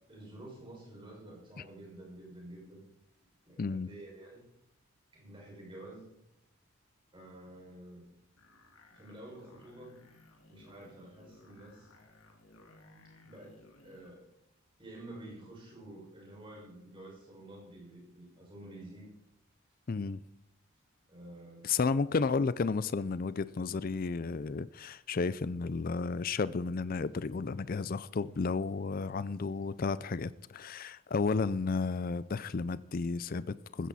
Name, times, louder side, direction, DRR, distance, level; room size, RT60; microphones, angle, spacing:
voice 1, 0.1-2.9 3.5-4.5 5.1-6.1 7.1-8.0 8.9-10.0 10.5-11.9 13.2-14.2 14.8-19.1 21.1-21.8 22.9-23.1, right 1 dB, 25° right, 5.8 m, -50 dB
voice 2, 3.6-3.9 19.9-20.2 21.6-33.9, left 4 dB, 40° left, 0.4 m, -32 dB
sound 1, 8.4-14.2, left 2 dB, 75° left, 2.3 m, -59 dB
15.0 x 14.5 x 4.2 m
head